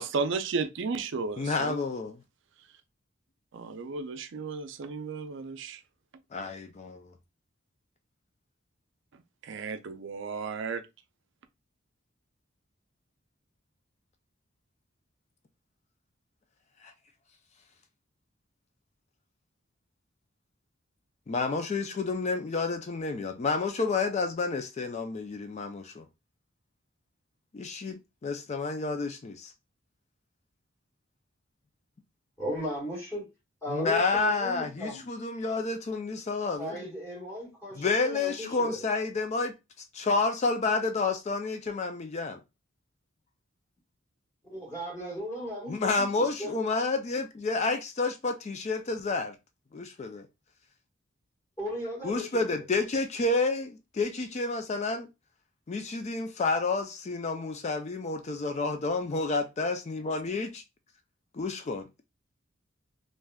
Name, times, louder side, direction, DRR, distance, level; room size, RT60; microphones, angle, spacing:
voice 1, 0.0-1.8 3.5-5.8 9.4-10.8, right 4 dB, 65° right, 0.4 m, -33 dB
voice 2, 1.4-2.2 6.3-7.1 16.8-16.9 21.3-26.1 27.5-29.5 33.7-36.9 37.8-39.5 39.9-42.4 45.7-49.4 49.7-50.3 52.0-55.1 55.7-60.6 61.4-61.8, left 3 dB, 35° left, 0.4 m, -30 dB
voice 3, 32.4-33.3 33.6-35.0 36.6-38.8 44.4-46.5 51.6-52.6, left 1 dB, 15° left, 1.7 m, -36 dB
3.4 x 2.6 x 2.3 m
head